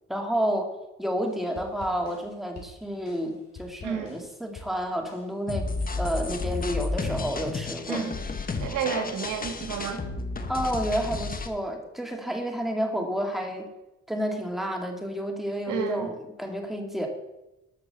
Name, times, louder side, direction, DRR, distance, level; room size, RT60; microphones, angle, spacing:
voice 1, 0.1-0.7 1.0-5.7 6.0-8.0 10.5-13.7 14.1-17.1, equal, ahead, 3 dB, 2.3 m, -30 dB
sound 1, 1.2-6.3, left 2 dB, 55° left, 4.0 m, -48 dB
voice 2, 3.8-4.3 7.9-8.1 8.6-10.0 15.7-16.1, right 7 dB, 80° right, 7 dB, 1.7 m, -31 dB
sound 2, 5.5-11.5, left 3 dB, 30° left, 1.3 m, -32 dB
12.5 x 6.0 x 6.7 m, 0.95 s
cardioid pair, 90°, 30 cm